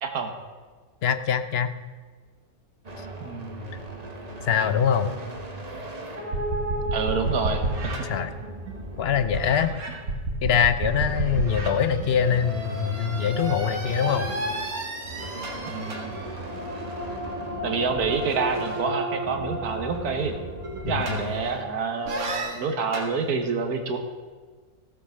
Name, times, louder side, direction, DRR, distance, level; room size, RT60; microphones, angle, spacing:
voice 1, 0.0-0.3 3.2-3.7 6.9-8.1 15.7-16.2 17.6-20.4 20.9-24.0, right 5 dB, 90° right, 5 dB, 1.7 m, -28 dB
voice 2, 1.0-1.7 4.4-5.1 8.0-8.3 9.0-9.7 10.4-14.3 20.8-21.2, left 8 dB, 55° left, 11 dB, 0.8 m, -23 dB
sound 1, 2.8-10.0 10.4-21.6, right 1 dB, 30° right, 1.2 m, -39 dB
sound 2, 6.2-8.9 9.3-21.6 22.1-23.1, right 2 dB, 75° right, 2.2 m, -32 dB
15.0 x 7.6 x 6.4 m, 1.5 s
omnidirectional pair, 1.6 m